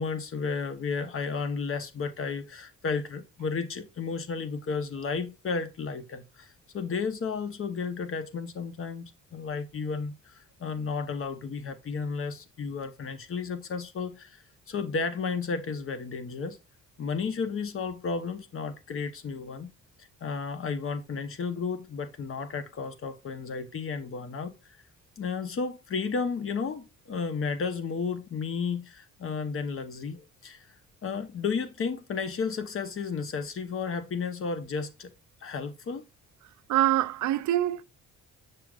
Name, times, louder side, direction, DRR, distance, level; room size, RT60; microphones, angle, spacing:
voice 1, 0.0-16.6 17.0-19.7 20.0-24.5 25.2-30.7 31.0-35.1 35.4-36.0, left 5 dB, 45° left, 1.0 m, -33 dB
voice 2, 36.7-37.8, right 14 dB, 75° right, 0.5 m, -24 dB
6.6 x 6.2 x 2.4 m
cardioid pair, 90°, 30 cm